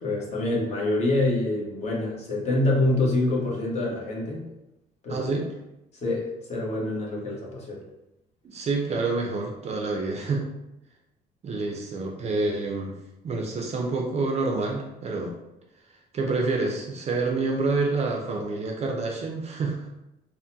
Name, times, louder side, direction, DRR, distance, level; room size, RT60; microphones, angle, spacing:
voice 1, 0.0-4.5 5.0-5.2 6.0-7.8, left 2 dB, 40° left, -3 dB, 1.0 m, -26 dB
voice 2, 5.1-5.5 8.4-10.5 11.4-13.0 13.2-15.4 16.1-19.9, right 3 dB, 40° right, 0 dB, 0.5 m, -27 dB
3.7 x 2.1 x 2.7 m, 0.91 s
cardioid pair, 110°, 17 cm